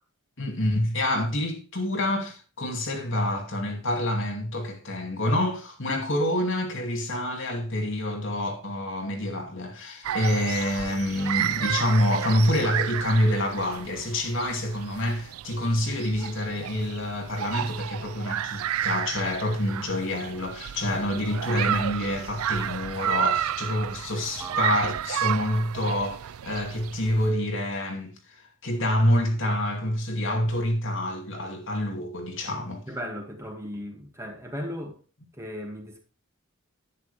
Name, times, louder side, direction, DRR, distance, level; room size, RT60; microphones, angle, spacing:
voice 1, 0.4-32.8, left 1 dB, 60° left, 2.5 m, -27 dB
sound 1, 10.0-27.3, right 11 dB, 90° right, 0.4 m, -32 dB
voice 2, 24.4-24.7 32.9-35.0 35.3-36.0, equal, 15° right, 2.1 m, -36 dB
11.0 x 9.3 x 3.4 m
head